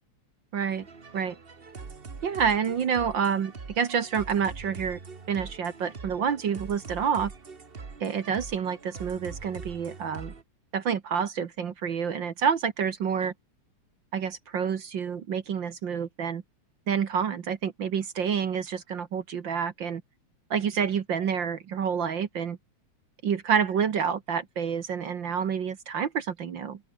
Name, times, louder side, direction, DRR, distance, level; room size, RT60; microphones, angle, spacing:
voice 1, 0.5-0.9 1.1-1.3 2.2-5.0 5.3-7.3 8.0-10.3 10.7-13.3 14.1-16.4 16.9-18.6 18.9-20.0 20.5-22.6 23.2-26.8, right 7 dB, 50° right, 1.6 m, -28 dB
sound 1, 0.7-10.4, right 4 dB, 30° right, 1.2 m, -43 dB
open air
omnidirectional pair, 3.3 m